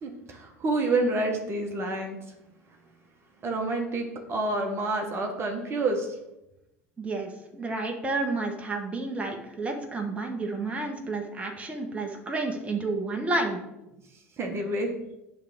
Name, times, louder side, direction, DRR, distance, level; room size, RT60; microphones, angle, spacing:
voice 1, 0.0-2.2 3.4-6.1 14.4-14.9, right 2 dB, 35° right, 3 dB, 1.4 m, -28 dB
voice 2, 7.0-13.6, right 3 dB, 15° right, 2 dB, 1.4 m, -30 dB
9.1 x 3.5 x 6.2 m, 0.92 s
figure-of-eight pair, 70°, 7 cm